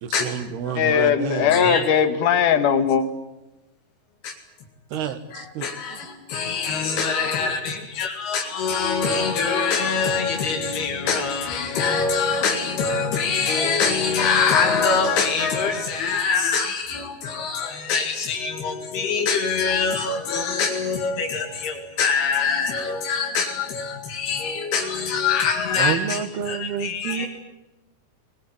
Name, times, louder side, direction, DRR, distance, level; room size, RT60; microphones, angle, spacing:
voice 1, 0.0-1.8 4.9-6.0 25.8-27.3, right 8 dB, 85° right, 10 dB, 3.6 m, -29 dB
voice 2, 0.8-3.0, left 7 dB, 60° left, 10 dB, 2.8 m, -19 dB
voice 3, 1.5-1.8 4.2-4.3 5.3-26.2 26.5-27.3, left 5 dB, 85° left, 2 dB, 4.2 m, -24 dB
22.0 x 21.0 x 9.6 m, 1.0 s
omnidirectional pair, 4.4 m